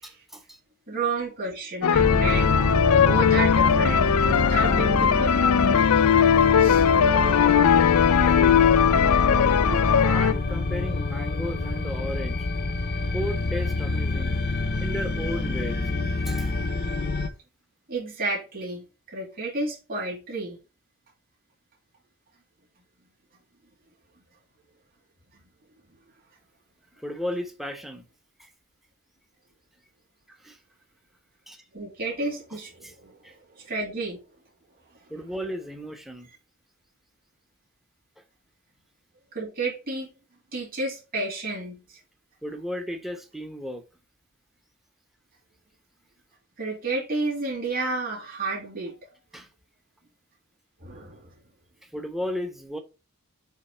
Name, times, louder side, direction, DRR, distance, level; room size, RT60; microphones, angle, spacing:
voice 1, 0.0-0.6 5.9-6.2 8.2-8.7 9.6-12.5 13.0-14.4 14.8-15.8 16.2-16.6 27.0-28.1 30.4-30.6 31.5-31.6 32.8-32.9 33.2-33.3 35.1-36.3 42.4-43.8 49.3-49.5 51.9-52.8, equal, ahead, 0.9 m, -34 dB
voice 2, 0.9-2.6 3.0-5.3 6.6-6.8 17.9-20.6 31.7-34.2 35.0-35.1 39.3-40.1 40.5-42.0 46.6-49.0 50.8-51.3, right 3 dB, 45° right, 2.7 m, -31 dB
sound 1, 1.8-10.3, left 7 dB, 85° left, 0.5 m, -19 dB
sound 2, 1.9-17.3, left 3 dB, 45° left, 0.8 m, -26 dB
7.4 x 3.2 x 4.4 m
head